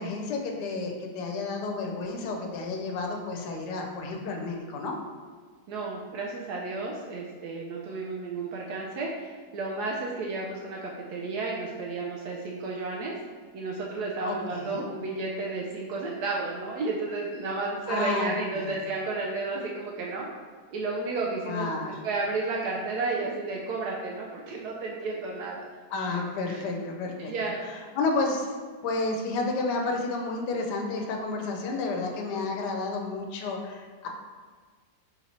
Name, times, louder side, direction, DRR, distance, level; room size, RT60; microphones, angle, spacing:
voice 1, 0.0-5.0 14.2-14.9 17.9-18.8 21.5-22.0 25.9-27.3 28.0-28.5 28.8-34.1, left 3 dB, 80° left, 2 dB, 1.2 m, -31 dB
voice 2, 5.7-13.1 13.5-20.3 20.7-21.7 22.0-25.6 26.5-26.6 27.2-27.6, right 3 dB, 75° right, -2 dB, 1.0 m, -32 dB
3.8 x 2.9 x 4.1 m, 1.5 s
omnidirectional pair, 1.8 m